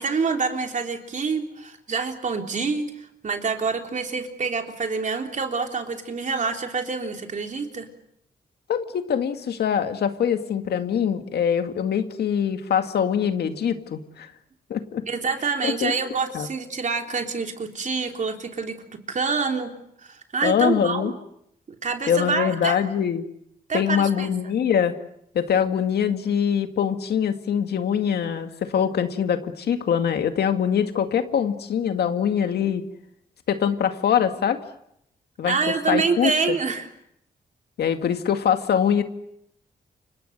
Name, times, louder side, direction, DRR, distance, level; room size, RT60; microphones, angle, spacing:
voice 1, 0.0-7.9 15.1-19.7 20.0-21.1 21.8-22.8 23.7-24.3 35.4-36.9, right 4 dB, 50° right, 4 dB, 3.4 m, -27 dB
voice 2, 8.7-14.3 14.7-15.1 15.6-15.9 16.3-16.5 20.4-21.1 22.1-23.3 23.7-24.9 25.3-32.8 33.5-34.6 35.4-35.6 35.9-36.3 37.8-39.0, left 8 dB, 85° left, 7 dB, 2.1 m, -23 dB
29.0 x 26.0 x 6.6 m, 0.76 s
cardioid pair, 90°, 16 cm